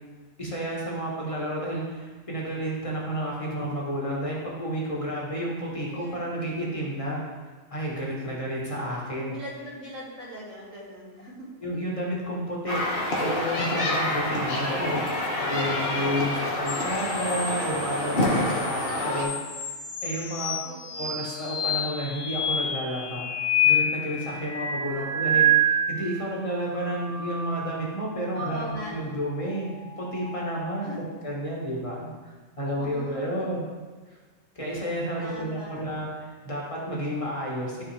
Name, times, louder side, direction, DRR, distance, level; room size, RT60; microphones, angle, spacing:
voice 1, 0.4-7.2 7.7-9.4 11.6-12.8 13.2-19.4 20.0-20.6 21.0-29.7 30.0-30.9 31.2-33.7 34.6-37.8, equal, 25° left, -4 dB, 1.8 m, -31 dB
voice 2, 5.9-6.2 9.3-11.5 15.5-16.2 18.8-19.5 20.6-21.1 24.9-25.5 28.3-29.0 30.8-31.1 32.6-33.3 35.2-35.9, equal, 65° right, -8 dB, 3.0 m, -40 dB
sound 1, 12.7-19.2, left 1 dB, 45° left, 1.4 m, -27 dB
sound 2, 16.7-26.2 26.7-28.0 29.8-31.0, equal, 75° left, 1.3 m, -28 dB
12.5 x 4.3 x 3.5 m, 1.4 s
omnidirectional pair, 1.4 m